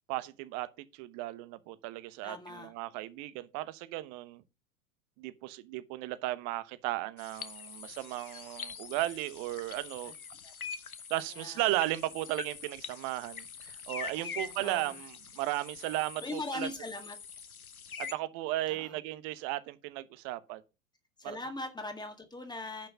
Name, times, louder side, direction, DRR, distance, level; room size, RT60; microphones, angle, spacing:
voice 1, 0.1-4.4 5.2-10.1 11.1-16.7 18.0-20.6 21.2-21.4, right 17 dB, 45° right, 1.1 m, -35 dB
voice 2, 2.2-2.7 10.1-10.2 10.4-10.5 11.3-11.7 14.2-15.0 16.2-17.2 18.7-19.0 21.2-22.9, left 2 dB, 10° left, 1.8 m, -41 dB
sound 1, 7.2-18.1, left 6 dB, 90° left, 1.0 m, -44 dB
10.5 x 5.6 x 5.8 m
figure-of-eight pair, 90°, 42 cm